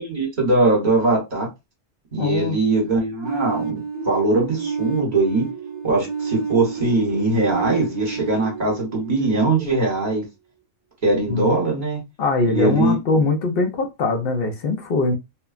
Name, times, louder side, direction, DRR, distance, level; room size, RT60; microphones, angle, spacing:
voice 1, 0.0-1.5 2.1-5.4 5.8-10.2 11.0-12.0 12.5-13.0, right 2 dB, 40° right, 1.2 m, -21 dB
voice 2, 2.2-2.6 11.3-11.6 12.2-15.2, left 3 dB, 55° left, 0.8 m, -22 dB
sound 1, 3.2-10.0, right 5 dB, 70° right, 0.9 m, -30 dB
3.0 x 2.2 x 2.4 m
omnidirectional pair, 1.3 m